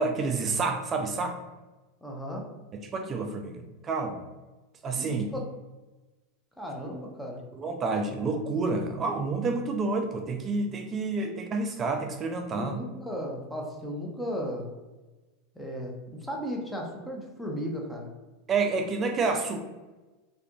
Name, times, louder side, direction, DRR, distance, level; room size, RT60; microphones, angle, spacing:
voice 1, 0.0-1.4 2.8-4.2 4.8-5.3 7.5-12.8 18.5-19.6, right 3 dB, 30° right, 5 dB, 0.3 m, -29 dB
voice 2, 2.0-2.5 5.0-5.4 6.6-7.4 12.5-14.7 15.5-15.9 16.2-18.1, equal, 5° left, -1 dB, 0.7 m, -35 dB
2.8 x 2.4 x 2.2 m, 1.2 s
hypercardioid pair, 110°, 0 cm